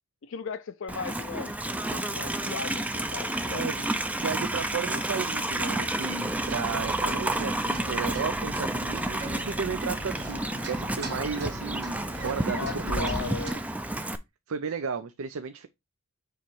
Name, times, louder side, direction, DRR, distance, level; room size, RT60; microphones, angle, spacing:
voice 1, 0.2-3.9 12.5-13.6, left 5 dB, 60° left, 0.4 m, -37 dB
Livestock farm animals working animals, 0.9-14.2, right 1 dB, 5° right, 0.3 m, -30 dB
voice 2, 3.4-3.9 4.2-13.4 14.5-15.7, right 6 dB, 75° right, 0.5 m, -34 dB
sound 1, 6.2-13.5, right 1 dB, 50° right, 1.9 m, -39 dB
7.0 x 3.0 x 4.5 m
head